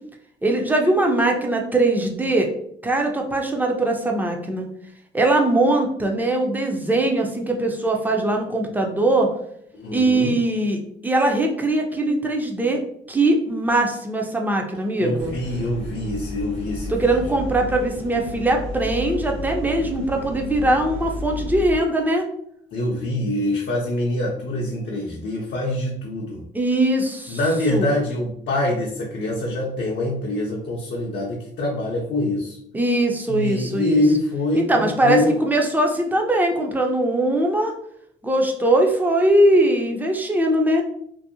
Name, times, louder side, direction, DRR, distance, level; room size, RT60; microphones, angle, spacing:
voice 1, 0.4-2.5 2.8-4.7 5.1-9.3 9.9-12.8 13.1-15.3 16.9-22.3 26.5-27.4 27.7-27.9 32.7-34.0 34.5-37.7 38.2-40.8, right 1 dB, 10° right, 2 dB, 0.5 m, -21 dB
voice 2, 9.7-10.3 15.0-17.2 22.7-26.4 27.3-32.6 33.3-35.4, left 1 dB, 55° left, -3 dB, 0.6 m, -24 dB
sound 1, 15.2-21.8, left 1 dB, 75° right, 1.1 m, -32 dB
2.6 x 2.0 x 2.6 m, 0.69 s
cardioid pair, 90°, 20 cm